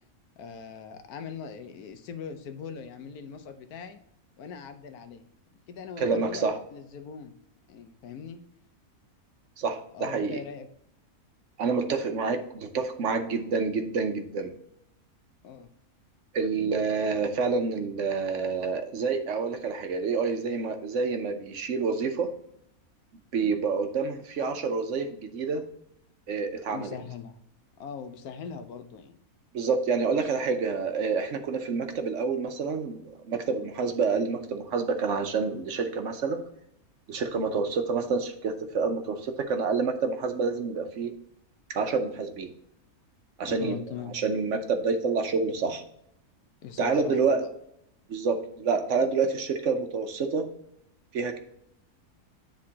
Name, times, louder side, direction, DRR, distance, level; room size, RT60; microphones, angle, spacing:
voice 1, 0.4-4.0 4.4-5.2 5.7-7.3 7.7-8.4 9.9-10.7 15.4-15.7 26.7-27.4 27.8-29.2 30.0-30.3 43.4-44.1 46.6-47.5, left 6 dB, 85° left, 9 dB, 1.2 m, -41 dB
voice 2, 6.0-6.5 9.6-10.4 11.6-14.5 16.3-22.3 23.3-25.6 26.3-26.9 29.5-36.4 37.1-41.1 41.7-42.5 43.4-43.8 44.2-45.8 46.8-47.4 48.1-50.5 51.1-51.4, right 4 dB, 60° right, 6 dB, 1.0 m, -28 dB
9.6 x 3.7 x 2.8 m, 0.73 s
omnidirectional pair, 1.5 m